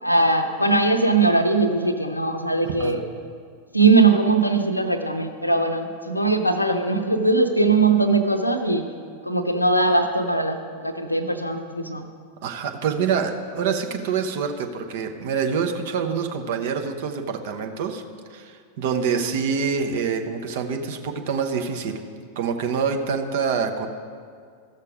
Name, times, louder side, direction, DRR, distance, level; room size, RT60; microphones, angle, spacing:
voice 1, 0.0-3.0 3.7-8.8 9.2-12.1, right 3 dB, 85° left, 7 dB, 0.7 m, -20 dB
voice 2, 2.6-3.0 12.4-18.0 18.3-22.0 22.4-23.9, right 6 dB, 50° right, 5 dB, 0.9 m, -26 dB
14.5 x 6.6 x 4.9 m, 2.1 s
figure-of-eight pair, 90°, 0 cm